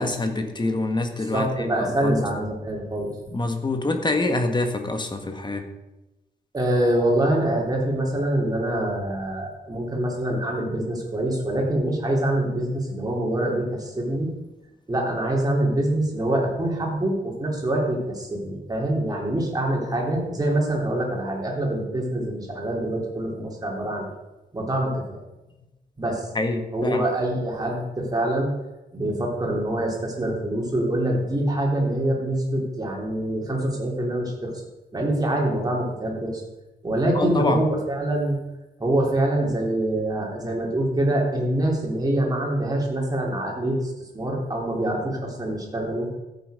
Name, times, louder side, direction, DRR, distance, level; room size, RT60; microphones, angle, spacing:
voice 1, 0.0-2.3 3.3-5.6 26.3-27.0 37.1-37.6, left 2 dB, 25° left, 5 dB, 1.6 m, -26 dB
voice 2, 1.3-3.1 6.5-14.3 14.9-24.1 24.5-25.2 26.0-26.3 26.7-28.5 28.9-34.5 34.9-36.4 36.8-38.4 38.8-46.2, right 1 dB, 20° right, -2 dB, 3.5 m, -25 dB
14.5 x 8.3 x 5.2 m, 1.0 s
wide cardioid pair, 120°, 17 cm